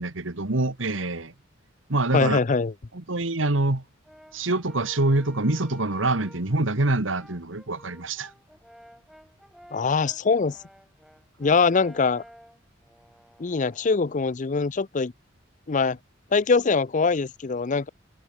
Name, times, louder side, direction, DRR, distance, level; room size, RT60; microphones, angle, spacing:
voice 1, 0.0-1.3 1.9-2.4 2.9-3.8 4.3-8.3, right 2 dB, 80° right, 1.9 m, -25 dB
voice 2, 2.1-2.7 9.7-10.6 11.4-12.2 13.4-15.1 15.7-16.0 16.3-17.9, left 4 dB, 40° left, 0.5 m, -23 dB
Brass instrument, 4.0-6.6 7.1-14.1, equal, ahead, 6.5 m, -51 dB
head